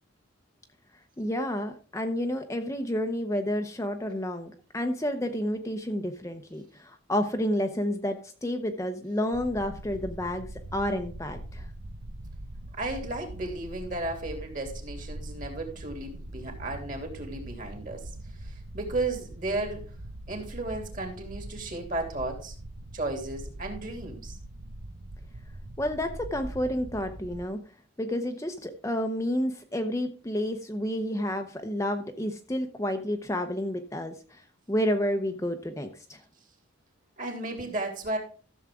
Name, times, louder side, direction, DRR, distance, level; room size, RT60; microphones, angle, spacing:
voice 1, 1.2-11.7 25.8-27.6 28.0-34.4 34.7-36.2, left 1 dB, 15° left, 5 dB, 0.8 m, -30 dB
sound 1, 9.3-27.5, right 1 dB, 75° right, 1.0 m, -42 dB
voice 2, 12.8-18.1 18.4-19.8 20.3-22.5 22.9-24.4 37.2-38.2, right 2 dB, 40° right, 3 dB, 3.1 m, -34 dB
14.0 x 7.2 x 3.7 m, 0.39 s
head